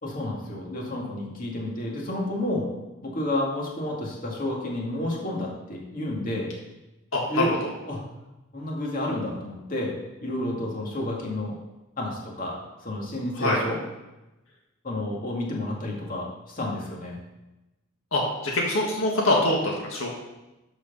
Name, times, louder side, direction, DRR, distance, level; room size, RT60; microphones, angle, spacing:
voice 1, 0.0-2.7 3.0-6.5 7.3-7.5 7.9-8.0 8.5-9.9 10.2-11.6 12.0-13.8 14.8-17.2, left 1 dB, 40° left, -2 dB, 2.2 m, -30 dB
voice 2, 7.1-7.5 13.4-13.6 18.1-20.1, left 2 dB, 75° left, -2 dB, 1.7 m, -24 dB
12.5 x 4.9 x 5.5 m, 1.0 s
head